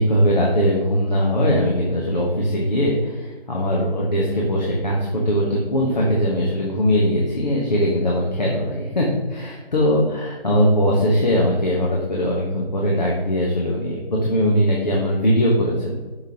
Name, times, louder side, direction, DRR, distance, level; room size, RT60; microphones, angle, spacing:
voice 1, 0.0-16.0, equal, 45° left, -3 dB, 1.2 m, -20 dB
7.0 x 6.0 x 2.9 m, 1.3 s
figure-of-eight pair, 175°, 30 cm